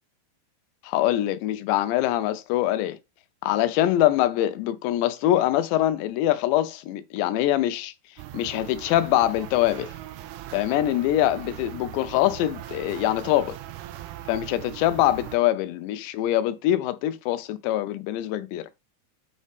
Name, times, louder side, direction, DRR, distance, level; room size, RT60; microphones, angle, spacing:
voice 1, 0.8-3.0 3.4-7.9 8.3-9.9 10.5-13.6 14.3-18.7, left 13 dB, 85° left, 3.0 m, -24 dB
sound 1, 8.2-15.4, right 14 dB, 85° right, 2.5 m, -40 dB
7.3 x 5.4 x 3.4 m
omnidirectional pair, 5.0 m